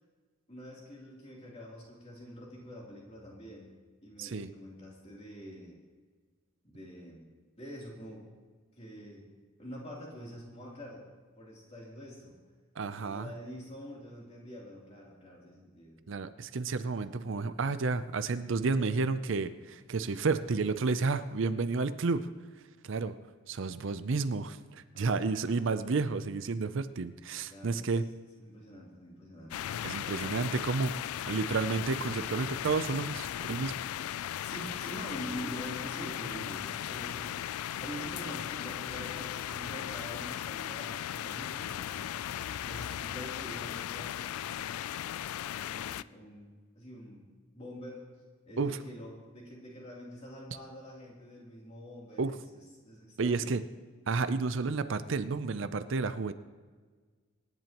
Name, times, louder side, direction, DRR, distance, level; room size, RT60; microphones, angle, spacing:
voice 1, 0.5-3.7 4.0-5.7 6.6-7.2 7.6-8.2 8.7-9.3 9.6-11.0 11.4-12.4 12.9-16.0 24.9-25.6 27.4-28.0 28.4-29.7 34.4-42.1 42.6-44.7 45.3-47.3 47.5-48.1 48.5-53.5, equal, 30° left, -4 dB, 3.1 m, -46 dB
voice 2, 4.2-4.5 12.8-13.3 16.1-22.3 22.8-23.2 23.5-28.1 29.8-31.0 31.3-33.7 48.6-48.8 52.2-52.3 53.2-53.6 54.1-56.3, right 4 dB, 60° right, 12 dB, 0.5 m, -31 dB
sound 1, 29.5-46.0, left 11 dB, 90° left, 0.3 m, -37 dB
25.0 x 10.5 x 3.0 m, 1.5 s
head